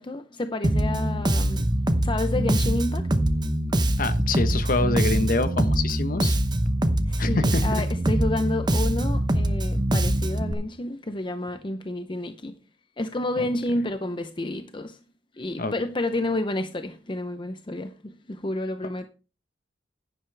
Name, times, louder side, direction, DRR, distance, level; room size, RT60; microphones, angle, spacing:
voice 1, 0.0-1.7 2.0-3.2 3.8-4.0 7.1-12.6 13.0-15.0 15.4-19.1, left 1 dB, 25° left, 0.7 m, -30 dB
Bass guitar, 0.6-10.5, right 1 dB, 25° right, 0.9 m, -23 dB
voice 2, 4.0-6.4 7.2-7.8 13.4-13.5 15.6-15.7, left 2 dB, 50° left, 1.1 m, -26 dB
11.0 x 10.5 x 3.4 m
head